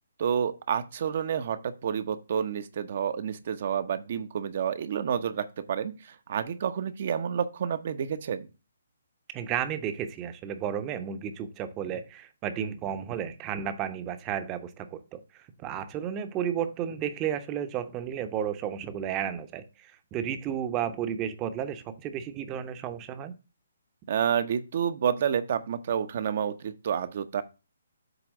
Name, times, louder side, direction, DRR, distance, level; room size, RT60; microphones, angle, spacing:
voice 1, 0.2-8.5 24.1-27.4, right 8 dB, 50° right, 11 dB, 0.9 m, -29 dB
voice 2, 9.3-15.2 15.6-19.6 20.1-23.3, right 9 dB, 20° right, 11 dB, 0.8 m, -32 dB
8.0 x 3.4 x 6.2 m, 0.29 s
hypercardioid pair, 150°, 0 cm